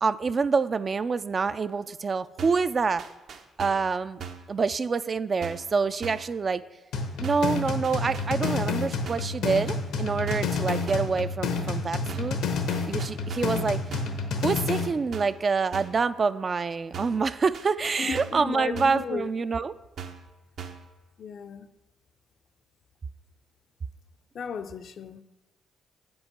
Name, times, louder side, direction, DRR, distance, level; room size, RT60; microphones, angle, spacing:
voice 1, 0.0-3.0 3.6-4.2 4.5-6.6 7.2-12.4 12.9-13.8 14.4-19.7, right 5 dB, 40° right, 0.3 m, -26 dB
sound 1, 2.4-2.7 3.0-3.9 4.2-4.5 5.4-5.7 6.0-6.3 7.2-7.6 7.8-8.8 9.0-9.4 10.3-10.6 10.9-11.2 12.1-12.4 12.7-13.6 13.9-14.2 15.1-15.4 15.7-16.1 16.9-17.3 17.5-18.5 18.8-19.1 20.0-20.3 20.6-20.9, right 7 dB, 65° right, 0.7 m, -40 dB
sound 2, 6.9-14.9, left 4 dB, 90° left, 1.0 m, -29 dB
voice 2, 18.0-19.3 21.2-21.7 24.4-25.2, left 6 dB, 60° left, 0.5 m, -34 dB
7.9 x 5.3 x 5.9 m
cardioid pair, 90°, 0 cm